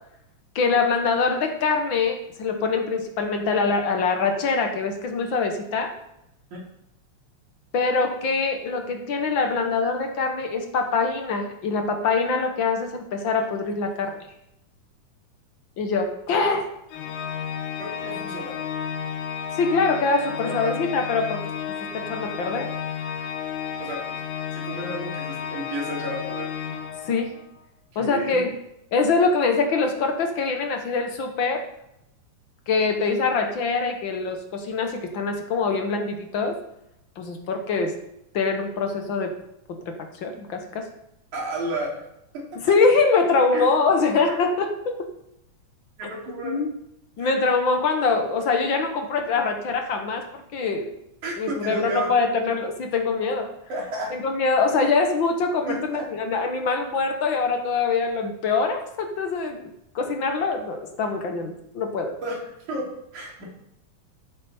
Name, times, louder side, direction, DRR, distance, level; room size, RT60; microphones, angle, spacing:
voice 1, 0.5-6.0 7.7-14.2 15.8-16.7 19.5-21.4 21.7-22.7 27.1-27.4 27.9-28.6 28.9-31.7 32.7-36.6 37.2-38.0 38.3-39.4 39.7-40.9 42.5-45.1 46.4-46.7 47.2-50.9 51.4-53.5 54.1-62.2, left 4 dB, 55° left, 5 dB, 1.4 m, -24 dB
Organ, 16.9-27.5, left 8 dB, 85° left, 2.4 m, -32 dB
voice 2, 17.8-18.6 20.5-20.9 23.8-24.2 24.5-26.5 27.9-28.5 41.3-42.0 42.3-42.6 43.5-43.6 46.0-46.6 47.2-47.4 51.2-52.1 53.7-54.1 55.7-56.1 62.2-62.4 62.7-63.4, right 1 dB, 70° right, -3 dB, 4.4 m, -32 dB
14.0 x 7.6 x 4.4 m, 0.80 s
omnidirectional pair, 3.6 m